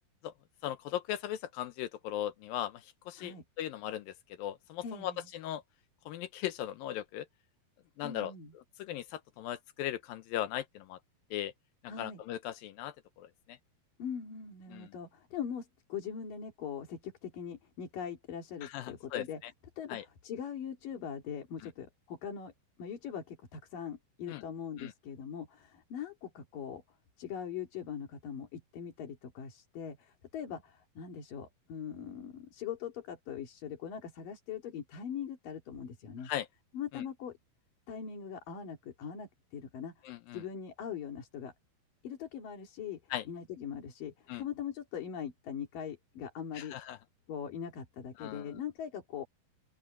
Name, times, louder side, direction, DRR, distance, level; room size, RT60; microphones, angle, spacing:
voice 1, 0.6-5.6 6.1-7.3 8.0-8.3 8.8-11.0 11.3-11.5 12.0-13.6 14.7-14.9 18.6-19.2 19.9-20.0 24.3-24.4 24.8-24.9 36.3-36.5 36.9-37.0 40.1-40.4 43.1-43.2 44.3-44.4 46.5-47.0 48.2-48.5, left 12 dB, 80° left, 2.3 m, -38 dB
voice 2, 4.8-5.3 8.0-8.5 11.9-12.2 14.0-19.4 19.8-22.5 22.8-26.8 27.2-36.3 36.7-37.4 37.9-40.1 40.3-41.5 42.0-46.8 47.3-49.3, left 8 dB, 60° left, 4.3 m, -41 dB
open air
omnidirectional pair, 4.7 m